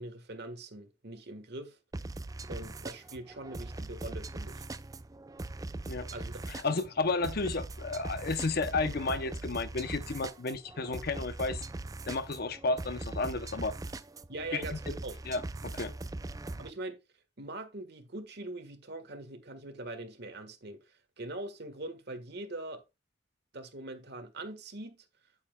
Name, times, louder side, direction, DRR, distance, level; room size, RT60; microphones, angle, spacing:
voice 1, 0.0-1.8 2.5-4.7 6.1-6.8 14.3-15.2 16.6-17.0 17.4-22.8 23.5-25.0, right 2 dB, 55° right, 1.5 m, -42 dB
sound 1, 1.9-16.7, right 2 dB, 15° right, 0.4 m, -41 dB
voice 2, 6.5-11.6 12.1-13.7 14.5-14.6 15.3-15.9, left 3 dB, 50° left, 0.7 m, -32 dB
9.3 x 8.5 x 2.3 m
head